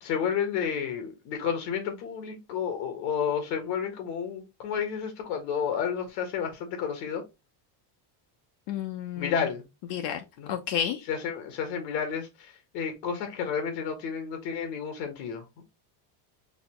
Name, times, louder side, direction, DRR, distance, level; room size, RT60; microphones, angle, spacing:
voice 1, 0.0-7.2 9.2-9.6 10.4-10.5 11.1-12.3 12.7-15.4, left 7 dB, 80° left, 1.6 m, -31 dB
voice 2, 8.7-9.5 9.9-11.0, left 9 dB, 60° left, 0.7 m, -31 dB
4.1 x 3.0 x 3.0 m
cardioid pair, 165°, 49 cm